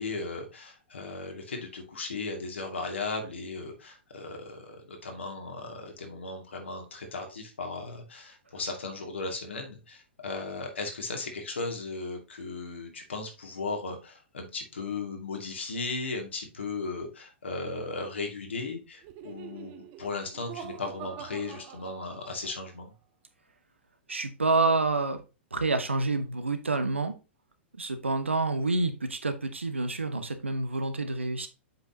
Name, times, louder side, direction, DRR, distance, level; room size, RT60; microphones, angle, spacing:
voice 1, 0.0-22.9, left 3 dB, 75° left, 2.3 m, -36 dB
Laughter, 19.0-22.7, right 9 dB, 40° right, 1.1 m, -45 dB
voice 2, 24.1-25.2 25.5-27.1 27.8-31.5, right 3 dB, 85° right, 1.1 m, -28 dB
7.7 x 5.7 x 2.9 m
figure-of-eight pair, 105°, 6 cm